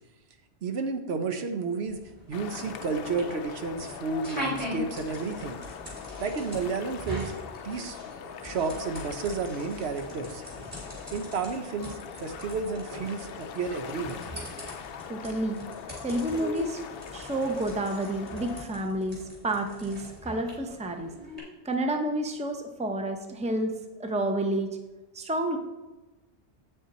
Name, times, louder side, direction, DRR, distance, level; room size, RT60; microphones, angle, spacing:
voice 1, 0.6-2.0 2.3-5.6 6.2-7.3 7.6-8.0 8.2-10.4 11.1-14.2, right 4 dB, 70° right, 7 dB, 1.0 m, -31 dB
sound 1, 1.9-21.4, equal, 35° right, 3.6 m, -41 dB
sound 2, 2.3-18.6, left 7 dB, 65° left, 0.7 m, -42 dB
voice 2, 15.1-15.6 16.0-16.8 17.1-21.1 21.6-24.7 25.1-25.6, right 1 dB, 5° right, 4 dB, 0.7 m, -30 dB
8.6 x 6.6 x 4.2 m, 1.1 s
omnidirectional pair, 1.2 m